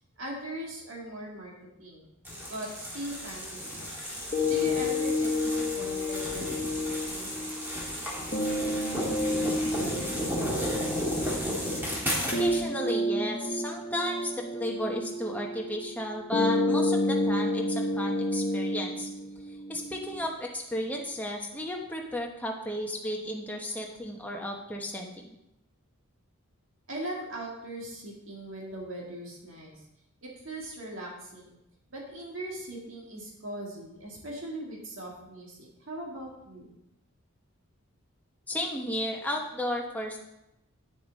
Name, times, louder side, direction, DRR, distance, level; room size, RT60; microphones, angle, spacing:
voice 1, 0.2-1.5 1.8-2.1 2.5-4.0 4.4-7.6 26.9-29.8 30.2-31.6 31.9-36.7, right 1 dB, 60° right, -2 dB, 2.2 m, -40 dB
sound 1, 2.2-12.6, equal, 10° right, 1.8 m, -34 dB
sound 2, 4.3-20.3, left 1 dB, 35° left, 1.0 m, -30 dB
voice 2, 12.2-19.1 19.7-25.1 38.5-40.2, left 1 dB, 5° left, 0 dB, 1.0 m, -34 dB
9.1 x 6.8 x 4.0 m, 0.87 s
head